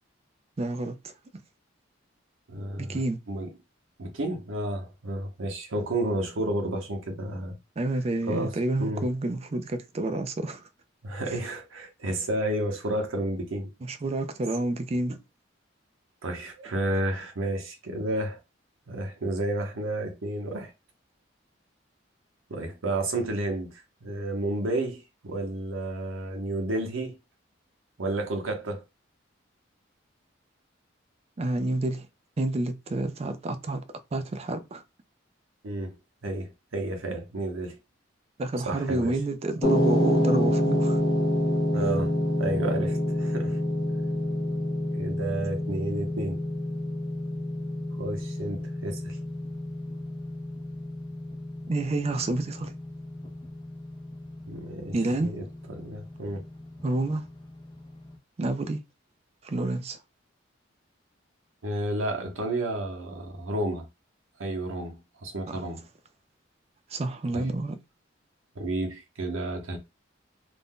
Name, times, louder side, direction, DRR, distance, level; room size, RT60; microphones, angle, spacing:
voice 1, 0.6-1.1 2.8-3.2 7.8-10.7 11.3-11.4 13.8-15.2 31.4-32.1 32.4-33.8 34.1-34.8 38.4-41.0 51.7-52.8 54.9-55.3 56.8-57.2 58.4-58.8 59.4-60.0 65.5-65.6 66.9-67.8, right 2 dB, 30° right, 0.3 m, -29 dB
voice 2, 2.5-3.5 4.0-7.6 7.9-9.1 11.0-13.7 16.2-18.4 18.9-20.7 22.5-27.2 28.0-28.8 35.6-35.9 36.2-37.8 38.6-39.2 41.7-42.1 42.4-43.6 44.9-46.4 48.0-49.2 54.5-56.5 61.6-63.9 64.4-65.9 67.3-67.5 68.6-69.8, right 1 dB, 85° right, 0.8 m, -31 dB
sound 1, 39.6-57.9, left 1 dB, 25° left, 0.5 m, -29 dB
2.5 x 2.1 x 3.5 m
head